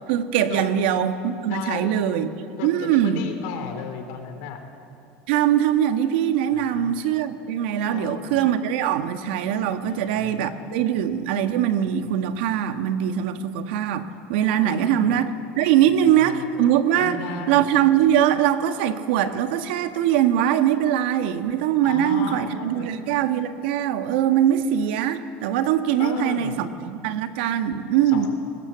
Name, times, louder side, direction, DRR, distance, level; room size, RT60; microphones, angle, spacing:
voice 1, 0.1-2.3 2.6-3.3 5.3-15.3 15.5-17.2 17.5-28.3, right 10 dB, 80° right, 8 dB, 1.4 m, -22 dB
voice 2, 1.5-1.9 2.6-4.6 6.5-6.9 7.9-8.4 9.8-10.8 14.6-15.1 15.8-16.5 16.9-17.7 21.8-22.9 26.0-26.5 28.1-28.3, left 7 dB, 70° left, 5 dB, 3.6 m, -34 dB
23.0 x 19.5 x 7.8 m, 2.5 s
supercardioid pair, 150°, 6 cm